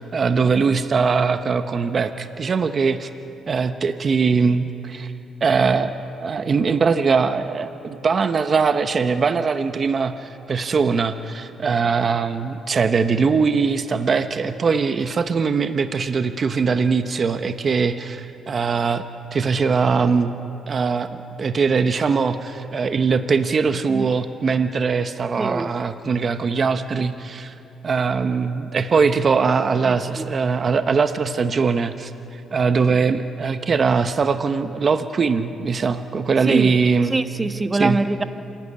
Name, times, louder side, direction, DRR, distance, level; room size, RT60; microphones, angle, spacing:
voice 1, 0.1-3.1 3.5-5.1 5.4-19.0 19.3-20.3 20.7-21.1 21.4-27.5 27.8-37.2 37.8-38.0, right 5 dB, 45° right, 9 dB, 0.9 m, -21 dB
voice 2, 29.8-30.2 36.5-36.7 37.1-38.2, right 2 dB, 20° right, 9 dB, 1.1 m, -23 dB
27.0 x 12.0 x 9.7 m, 2.8 s
cardioid pair, 90°, 0 cm